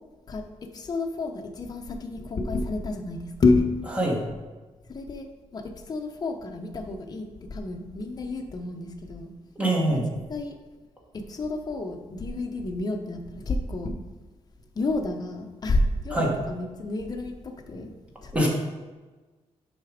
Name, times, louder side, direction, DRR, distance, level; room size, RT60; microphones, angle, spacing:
voice 1, 0.3-3.8 4.9-5.3 5.5-9.3 9.9-10.0 10.3-10.5 11.1-14.0 14.7-17.9 18.2-18.3, left 3 dB, 35° left, 4 dB, 0.8 m, -29 dB
voice 2, 9.5-10.0 16.1-16.3 18.3-18.5, right 1 dB, 10° right, -2 dB, 1.6 m, -23 dB
6.7 x 5.7 x 5.1 m, 1.3 s
wide cardioid pair, 160°, 12 cm